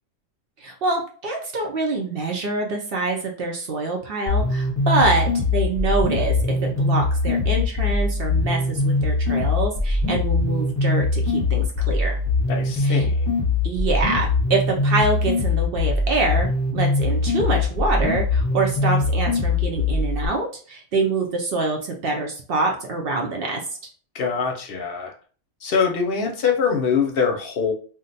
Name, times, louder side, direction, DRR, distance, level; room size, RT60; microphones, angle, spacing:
voice 1, 0.6-12.2 12.8-13.1 13.6-23.6, right 3 dB, 60° right, 2 dB, 0.7 m, -25 dB
sound 1, 4.3-20.3, left 3 dB, 15° left, 0.8 m, -22 dB
voice 2, 12.5-13.3 24.1-25.1 25.6-27.7, left 6 dB, 60° left, 2 dB, 0.7 m, -23 dB
2.6 x 2.1 x 3.9 m, 0.41 s
omnidirectional pair, 1.3 m